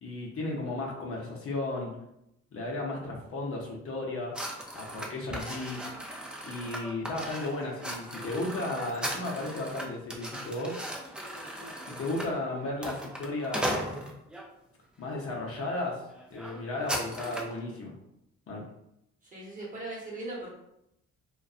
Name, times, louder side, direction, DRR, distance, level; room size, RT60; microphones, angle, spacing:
voice 1, 0.0-1.9 2.5-4.3 4.7-5.8 6.4-10.8 11.9-13.8 15.0-16.0 16.3-17.9 18.5-18.6, left 2 dB, 50° left, -2 dB, 0.7 m, -34 dB
sound 1, 4.3-14.5 15.1-15.3 15.7-15.8 16.1-17.6, equal, 5° right, 0.4 m, -38 dB
voice 2, 19.2-20.5, right 2 dB, 25° right, -5 dB, 1.0 m, -39 dB
2.5 x 2.2 x 2.3 m, 0.82 s
cardioid pair, 90°, 30 cm